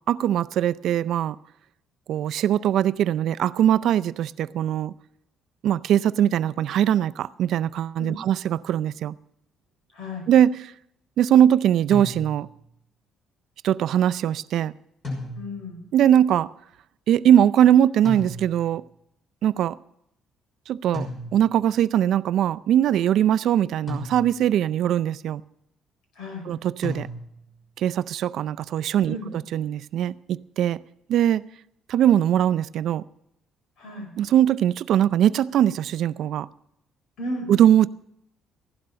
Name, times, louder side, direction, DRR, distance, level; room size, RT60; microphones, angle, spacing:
voice 1, 0.1-1.4 2.1-4.9 5.6-9.1 10.3-10.6 11.2-12.5 13.6-14.7 15.9-16.5 17.1-18.8 19.4-19.8 20.7-25.4 26.5-27.1 27.8-29.2 29.5-30.8 31.1-31.4 31.9-33.0 34.2-36.5 37.5-37.9, right 10 dB, 65° right, 0.4 m, -21 dB
voice 2, 9.9-10.2 15.3-15.8 26.1-26.5 29.1-29.3 33.8-34.1 37.2-37.5, left 1 dB, 70° left, 5.0 m, -34 dB
sound 1, 11.9-12.7 15.0-15.8 18.0-18.8 20.9-21.7 23.9-24.6 26.8-27.6, left 2 dB, 30° left, 6.0 m, -35 dB
15.5 x 12.0 x 5.7 m
cardioid pair, 135°, 0 cm